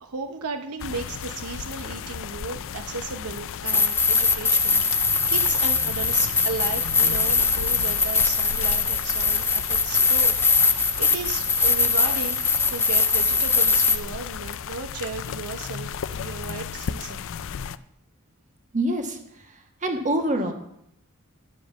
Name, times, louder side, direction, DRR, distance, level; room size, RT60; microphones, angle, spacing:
voice 1, 0.0-10.3 11.0-12.4 12.7-17.3, right 4 dB, 80° right, 6 dB, 0.8 m, -35 dB
sound 1, 0.8-17.8, left 7 dB, 60° left, 0.4 m, -34 dB
sound 2, 3.7-14.0, left 4 dB, 10° left, 0.5 m, -21 dB
voice 2, 18.7-20.5, right 1 dB, 35° right, 4 dB, 1.5 m, -26 dB
11.5 x 5.2 x 7.2 m, 0.76 s
head